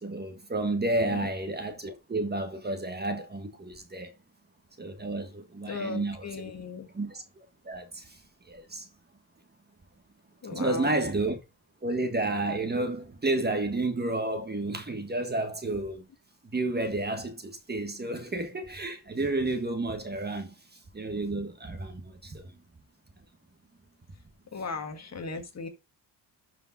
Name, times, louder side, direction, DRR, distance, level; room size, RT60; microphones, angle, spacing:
voice 1, 0.0-4.1 4.8-6.5 6.9-7.2 7.6-8.2 8.5-8.9 10.5-11.4 11.8-16.1 16.5-20.5 20.9-22.5, right 2 dB, 20° right, 1.6 m, -31 dB
voice 2, 5.7-6.9 10.4-10.9 24.5-25.7, left 4 dB, 35° left, 1.9 m, -37 dB
12.0 x 5.1 x 4.1 m
cardioid pair, 135°, 44 cm